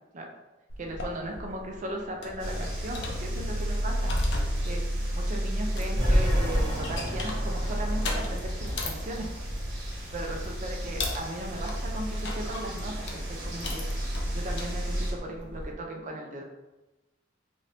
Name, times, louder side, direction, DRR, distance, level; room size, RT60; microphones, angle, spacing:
sound 1, 0.7-15.7, left 2 dB, 60° left, 0.5 m, -39 dB
voice 1, 0.8-4.1 4.6-4.8 5.1-9.3 10.1-16.4, right 1 dB, 40° right, 1 dB, 0.5 m, -37 dB
sound 2, 2.4-15.1, equal, 70° right, 1.1 m, -32 dB
sound 3, 5.9-9.4, equal, 25° right, 1.2 m, -29 dB
2.7 x 2.6 x 3.2 m, 1.0 s
head